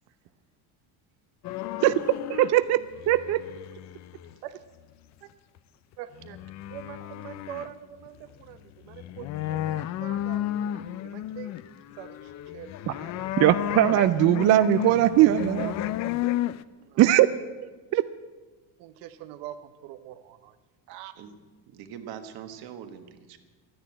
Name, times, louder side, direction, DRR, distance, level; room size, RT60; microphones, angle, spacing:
sound 1, 1.4-2.5 2.8-4.3 5.6-5.7 6.2-7.7 8.1-8.2 8.4-16.6, left 13 dB, 45° left, 0.4 m, -32 dB
voice 1, 2.3-3.4 12.9-13.0 13.4-15.8 17.0-17.3 17.9-18.0, right 14 dB, 45° right, 13 dB, 0.4 m, -20 dB
voice 2, 6.0-6.4 6.7-11.5 12.0-13.2 16.9-17.0 18.8-20.5 20.9-21.1, right 11 dB, 90° right, 10 dB, 0.9 m, -44 dB
voice 3, 21.7-23.4, right 8 dB, 65° right, 8 dB, 1.5 m, -42 dB
12.5 x 10.0 x 8.7 m, 1.3 s
cardioid pair, 155°, 39 cm